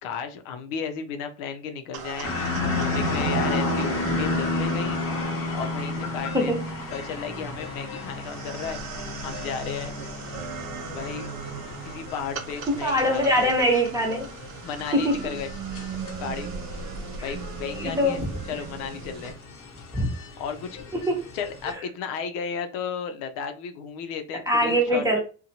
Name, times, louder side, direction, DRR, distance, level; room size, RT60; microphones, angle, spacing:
voice 1, 0.0-2.3 2.8-5.0 5.5-6.6 6.9-8.8 9.2-9.9 10.9-11.3 11.8-13.5 14.6-15.5 16.2-16.5 17.2-18.2 18.5-19.4 20.4-20.8 21.3-25.0, left 6 dB, 80° left, 0.5 m, -34 dB
sound 1, 1.9-19.3, right 6 dB, 70° right, 0.6 m, -38 dB
sound 2, 2.2-21.7, left 2 dB, 40° left, 0.8 m, -32 dB
voice 2, 6.3-6.7 12.7-14.3 14.9-15.2 17.2-17.3 17.7-18.3 19.9-20.1 21.1-21.2 24.5-25.2, equal, 10° right, 1.0 m, -23 dB
2.6 x 2.2 x 2.7 m
supercardioid pair, 75°, 37 cm